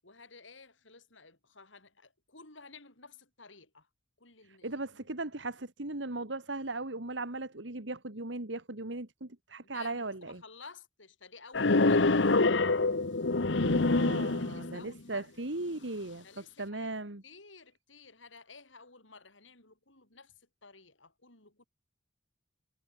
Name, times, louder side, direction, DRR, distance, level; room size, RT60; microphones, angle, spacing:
voice 1, 0.0-3.9 4.2-5.1 9.6-12.4 14.4-15.3 16.2-16.9 17.2-21.6, left 4 dB, 90° left, 7.7 m, -53 dB
voice 2, 4.6-10.4 13.6-16.2 16.6-17.2, right 2 dB, 75° right, 2.2 m, -38 dB
sound 1, 11.5-14.8, left 3 dB, 75° left, 1.1 m, -26 dB
head